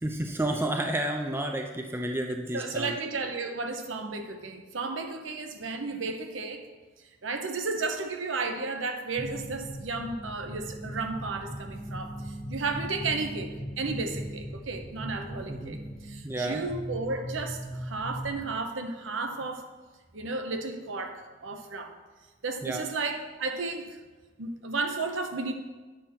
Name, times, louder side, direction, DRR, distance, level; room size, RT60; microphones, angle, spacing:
voice 1, 0.0-3.0 15.5-15.8 16.2-16.6 22.6-22.8, right 1 dB, 10° right, 3 dB, 0.5 m, -31 dB
voice 2, 2.5-6.6 7.2-19.7 20.1-21.9 22.4-24.0 24.4-25.5, right 3 dB, 80° right, 5 dB, 0.9 m, -33 dB
sound 1, 9.2-18.5, equal, 25° left, 1.0 m, -39 dB
8.8 x 4.4 x 5.8 m, 1.3 s
head